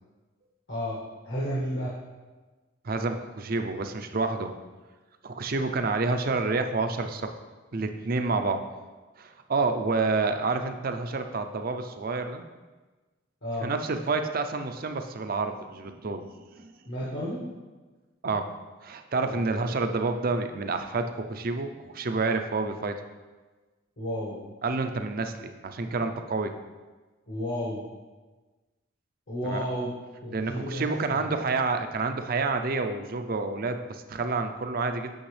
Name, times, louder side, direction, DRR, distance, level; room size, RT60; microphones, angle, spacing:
voice 1, 0.7-1.0 1.2-1.9 13.4-13.7 16.9-17.4 19.2-19.5 24.0-24.4 27.3-27.8 29.3-29.9 30.2-31.3, equal, 60° left, -7 dB, 1.5 m, -32 dB
voice 2, 2.8-4.5 5.2-7.4 7.7-8.6 9.2-12.4 13.6-16.3 16.6-16.7 18.2-18.5 18.8-23.0 24.6-26.5 29.4-29.7 30.3-35.1, right 3 dB, 50° right, 7 dB, 0.5 m, -29 dB
8.7 x 6.0 x 3.3 m, 1.3 s
head